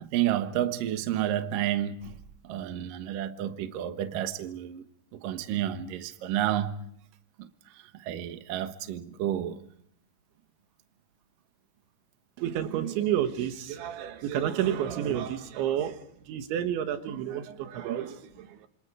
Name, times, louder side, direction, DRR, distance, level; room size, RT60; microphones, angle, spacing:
voice 1, 0.0-2.1 2.4-4.8 5.2-6.8 8.0-9.6, right 11 dB, 65° right, 2.5 m, -30 dB
voice 2, 12.4-18.7, right 10 dB, 85° right, 3.7 m, -30 dB
28.0 x 27.5 x 4.9 m
omnidirectional pair, 5.2 m